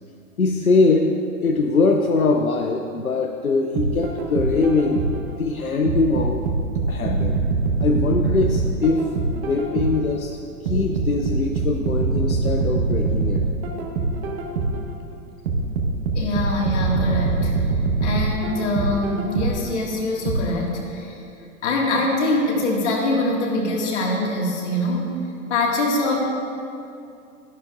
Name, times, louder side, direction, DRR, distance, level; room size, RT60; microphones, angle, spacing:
voice 1, 0.4-5.0 5.3-6.5 6.9-7.4 7.8-10.4 10.6-13.4, left 3 dB, 90° left, 3 dB, 0.7 m, -22 dB
sound 1, 3.8-5.3 5.9-10.1 10.7-14.9 15.5-19.7 20.3-20.4, right 3 dB, 50° right, 1.4 m, -23 dB
voice 2, 16.1-17.5 18.0-21.2 21.6-25.2 25.5-26.2, left 1 dB, 55° left, -1 dB, 2.1 m, -23 dB
12.5 x 11.0 x 2.6 m, 2.6 s
figure-of-eight pair, 105°, 41 cm